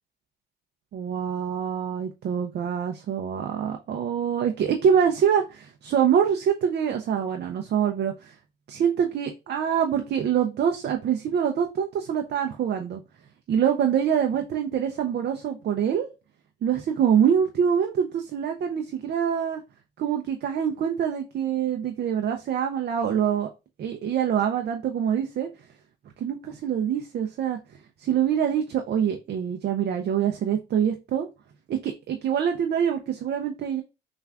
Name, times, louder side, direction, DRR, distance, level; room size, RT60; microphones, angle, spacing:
voice 1, 0.9-8.3 8.7-13.0 13.5-16.1 16.6-19.6 20.0-23.5 23.8-25.5 26.2-27.6 28.0-31.3 31.7-33.8, right 8 dB, 55° right, 5 dB, 0.5 m, -25 dB
5.6 x 2.4 x 2.3 m, 0.27 s
cardioid pair, 90°, 20 cm